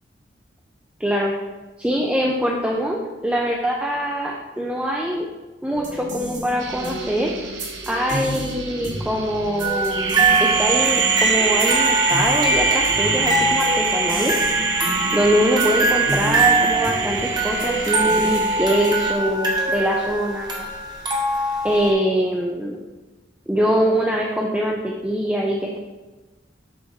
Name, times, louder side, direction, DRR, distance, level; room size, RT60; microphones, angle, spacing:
voice 1, 1.0-1.3 1.8-5.3 5.6-7.3 7.9-14.3 15.1-20.7 21.6-22.8 23.5-25.8, equal, 5° right, -1 dB, 0.5 m, -23 dB
sound 1, 5.7-19.2, right 1 dB, 45° right, 1.6 m, -32 dB
sound 2, 6.6-19.1, right 5 dB, 85° right, 0.9 m, -25 dB
sound 3, 9.6-21.9, right 2 dB, 25° right, 1.1 m, -23 dB
7.6 x 6.1 x 2.8 m, 1.2 s
head